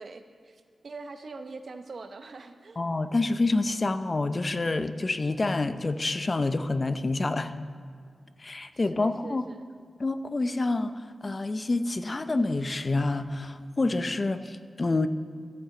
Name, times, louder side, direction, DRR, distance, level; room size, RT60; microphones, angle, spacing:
voice 1, 0.0-2.8 8.9-9.6, right 3 dB, 65° right, 7 dB, 0.7 m, -43 dB
voice 2, 2.8-7.5 8.4-9.4 10.0-15.1, left 2 dB, 40° left, 11 dB, 0.5 m, -27 dB
14.0 x 8.6 x 3.8 m, 2.1 s
cardioid pair, 60°, 0 cm